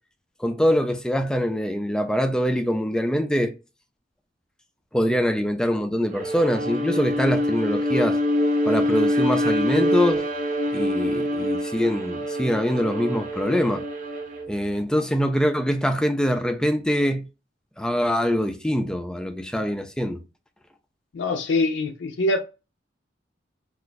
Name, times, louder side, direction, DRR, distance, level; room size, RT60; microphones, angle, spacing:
voice 1, 0.4-3.5 4.9-8.2 8.7-10.3 10.7-13.8 14.5-17.2 17.8-20.2, equal, 5° left, 0.3 m, -24 dB
Bowed string instrument, 6.1-14.5, equal, 45° right, 0.7 m, -25 dB
voice 2, 21.1-22.4, left 2 dB, 75° left, 0.4 m, -23 dB
2.4 x 2.3 x 3.8 m
head